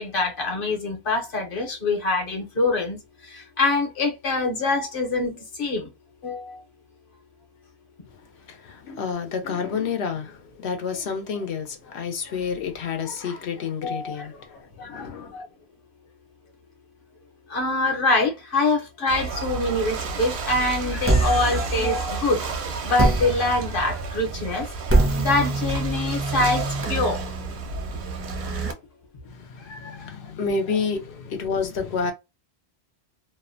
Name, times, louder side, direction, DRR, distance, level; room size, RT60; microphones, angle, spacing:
voice 1, 0.0-3.0 3.2-5.9 6.2-6.6 13.8-14.3 14.8-15.4 17.5-24.7 25.2-27.2 29.7-30.1, left 2 dB, 55° left, 1.0 m, -25 dB
voice 2, 8.5-15.3 29.3-32.1, left 5 dB, 80° left, 1.0 m, -29 dB
Ocean / Boat Water vehicle, 19.1-28.7, right 4 dB, 85° right, 0.9 m, -31 dB
sound 1, 21.0-22.4 23.0-28.7, right 2 dB, 20° right, 0.4 m, -26 dB
2.7 x 2.1 x 2.5 m
omnidirectional pair, 1.1 m